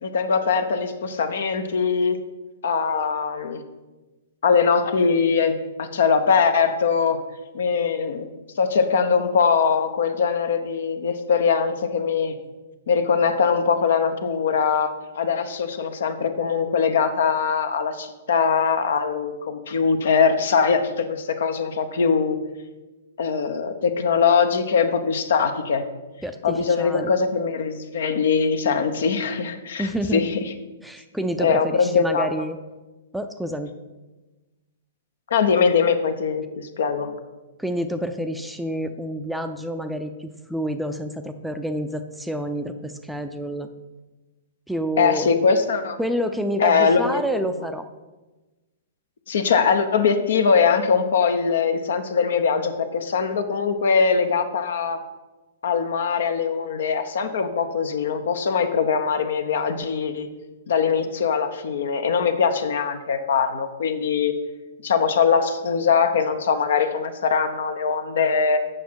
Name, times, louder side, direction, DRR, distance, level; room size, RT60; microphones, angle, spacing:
voice 1, 0.0-2.2 2.6-3.6 4.4-7.2 7.5-8.3 8.6-12.4 12.9-22.4 23.2-25.8 26.4-30.4 31.4-32.4 35.3-37.1 45.0-46.0 46.6-47.2 49.3-55.0 55.6-60.3 60.7-64.3 64.8-68.6, left 6 dB, 65° left, 9 dB, 0.8 m, -22 dB
voice 2, 26.2-27.1 29.8-30.3 30.8-32.6 33.1-33.7 37.6-43.7 44.7-45.3 46.0-47.9, equal, ahead, 7 dB, 0.5 m, -28 dB
7.9 x 6.0 x 4.7 m, 1.2 s
hypercardioid pair, 120°, 0 cm